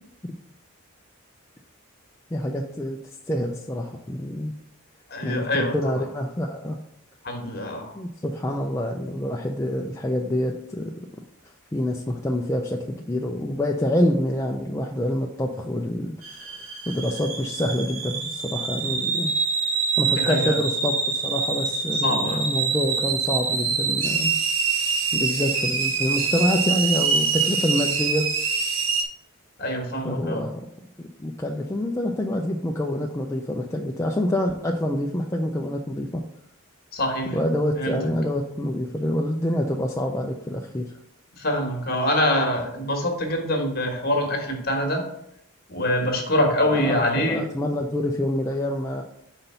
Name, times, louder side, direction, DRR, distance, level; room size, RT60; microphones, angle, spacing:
voice 1, 2.3-3.0 3.3-4.5 5.2-6.8 8.0-10.9 11.7-16.2 16.9-19.3 20.0-24.4 25.1-28.3 30.0-30.7 31.2-36.2 37.3-40.9 46.7-49.0, left 1 dB, 15° left, 0 dB, 0.4 m, -26 dB
voice 2, 5.1-6.0 7.2-7.9 20.2-20.6 21.9-22.4 29.6-30.5 36.9-37.4 37.7-38.1 41.4-45.0 45.7-47.4, left 1 dB, 45° left, 2 dB, 1.4 m, -25 dB
sound 1, 16.2-29.0, right 5 dB, 65° right, 1.0 m, -25 dB
5.6 x 4.0 x 5.5 m, 0.76 s
head